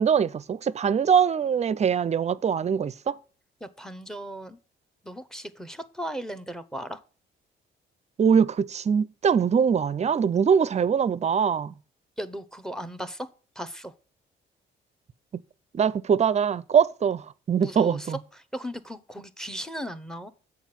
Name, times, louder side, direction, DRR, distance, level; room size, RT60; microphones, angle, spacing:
voice 1, 0.0-3.2 8.2-11.7 15.3-15.4 15.7-18.2, right 7 dB, 35° right, 0.5 m, -23 dB
voice 2, 3.6-4.6 5.0-7.0 12.2-13.3 13.5-13.9 17.6-18.2 18.5-20.3, equal, 5° left, 0.8 m, -36 dB
7.2 x 4.9 x 5.8 m
cardioid pair, 90°, 20 cm